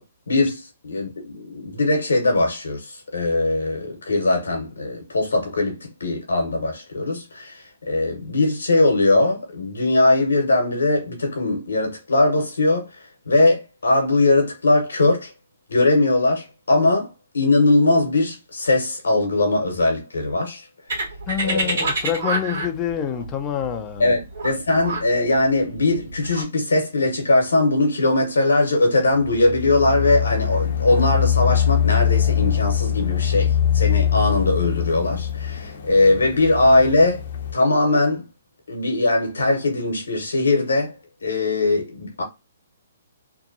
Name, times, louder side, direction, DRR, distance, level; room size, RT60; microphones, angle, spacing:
voice 1, 0.3-15.3 15.7-17.1 17.3-20.7 21.4-21.9 24.0-37.2 37.5-38.2 38.7-41.0 41.2-42.2, left 2 dB, 85° left, 1.0 m, -20 dB
sound 1, 20.9-26.4, right 2 dB, 65° right, 1.2 m, -27 dB
voice 2, 21.3-24.1, left 10 dB, 25° left, 0.4 m, -27 dB
sound 2, 29.2-37.5, left 9 dB, 60° left, 0.7 m, -22 dB
2.7 x 2.2 x 2.5 m
hypercardioid pair, 140°, 0 cm